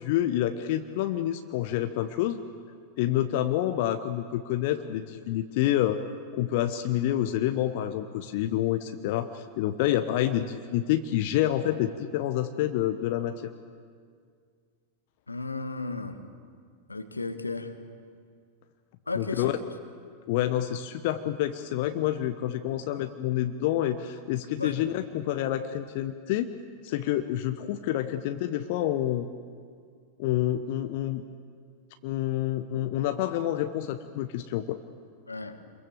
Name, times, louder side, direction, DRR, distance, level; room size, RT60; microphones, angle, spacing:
voice 1, 0.0-2.4 3.0-6.0 6.3-13.4 19.1-19.5 20.3-26.5 26.8-29.3 30.2-31.2 32.0-34.8, left 12 dB, 50° left, 8 dB, 1.0 m, -28 dB
voice 2, 15.3-16.2 16.9-17.7 19.1-19.5 24.6-24.7 35.3-35.6, left 3 dB, 80° left, 8 dB, 1.6 m, -34 dB
27.5 x 22.0 x 7.4 m, 2.1 s
figure-of-eight pair, 90°, 0 cm